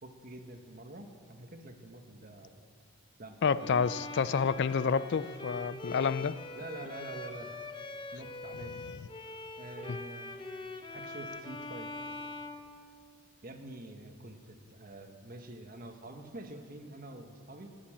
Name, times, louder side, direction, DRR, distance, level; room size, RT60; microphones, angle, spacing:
voice 1, 0.0-2.5 3.2-3.8 6.5-7.5 8.1-8.7 9.6-10.4 10.9-11.9 13.4-17.8, right 1 dB, 40° right, 4 dB, 1.3 m, -47 dB
voice 2, 3.4-6.3 9.9-10.0, left 6 dB, 50° left, 17 dB, 0.4 m, -29 dB
Bowed string instrument, 3.6-13.4, left 2 dB, 20° left, 0.7 m, -43 dB
19.5 x 7.2 x 8.7 m, 2.3 s
head